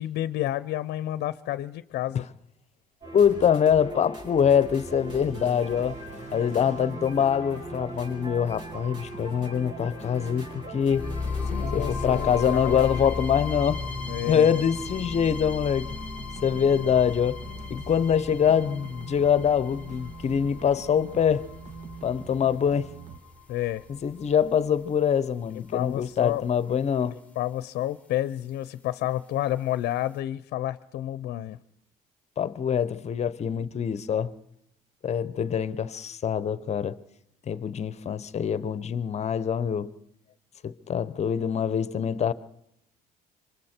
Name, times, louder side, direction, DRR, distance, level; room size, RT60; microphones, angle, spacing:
voice 1, 0.0-2.3 11.5-13.0 14.1-14.5 23.5-23.8 25.5-26.4 27.0-31.6, left 13 dB, 70° left, 0.7 m, -30 dB
sound 1, 3.0-13.0, right 1 dB, 30° right, 6.6 m, -41 dB
voice 2, 3.1-6.0 6.3-11.1 11.7-13.8 14.3-16.0 16.4-17.4 17.7-21.4 22.0-22.9 23.9-27.1 32.4-34.3 35.0-37.0 37.5-39.9 40.6-42.3, left 8 dB, 40° left, 0.9 m, -24 dB
sound 2, 5.1-23.2, right 4 dB, 45° right, 1.5 m, -44 dB
sound 3, 10.9-24.9, left 4 dB, 10° left, 1.4 m, -36 dB
26.5 x 24.0 x 4.5 m
cardioid pair, 110°, 17 cm